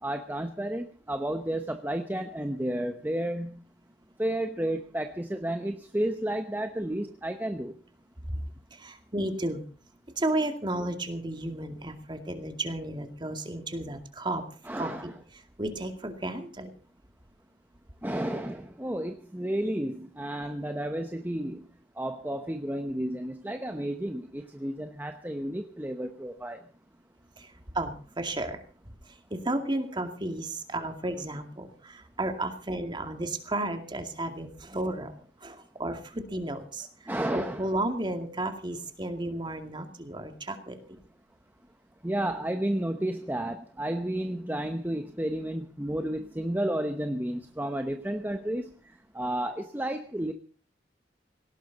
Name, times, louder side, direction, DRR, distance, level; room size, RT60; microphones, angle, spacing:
voice 1, 0.0-3.6 4.2-7.7 14.6-15.1 18.0-21.7 22.0-26.6 37.1-37.6 42.0-50.3, right 1 dB, 10° right, 7 dB, 0.9 m, -32 dB
voice 2, 8.8-9.6 10.2-14.4 14.8-15.1 15.6-16.7 27.4-27.5 27.7-28.6 29.3-35.1 35.4-36.9 37.3-41.0, right 1 dB, 25° right, 6 dB, 2.3 m, -33 dB
18.0 x 17.5 x 4.1 m, 0.39 s
head